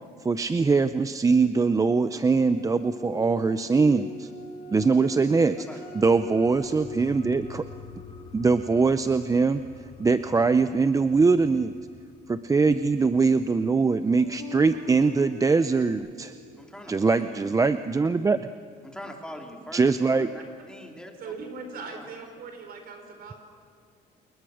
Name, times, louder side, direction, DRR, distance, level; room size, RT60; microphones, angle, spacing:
voice 1, 0.2-4.3 4.7-5.7 5.9-7.6 8.3-9.6 10.0-11.7 12.3-16.3 16.9-18.5 19.7-20.3, right 4 dB, 20° right, 11 dB, 0.6 m, -22 dB
sound 1, 2.5-9.3 12.9-13.0 14.1-15.9, left 3 dB, 65° left, 7.1 m, -41 dB
sound 2, 5.9-15.0 15.4-15.5, left 5 dB, 30° left, 2.5 m, -48 dB
voice 2, 16.6-17.5 18.8-19.9 20.1-20.4 20.7-21.1 21.8-22.1, left 1 dB, 5° left, 2 dB, 2.9 m, -42 dB
voice 3, 21.2-23.4, right 4 dB, 65° right, 5 dB, 5.0 m, -40 dB
29.0 x 20.5 x 6.5 m, 2.3 s
cardioid pair, 110°, 17 cm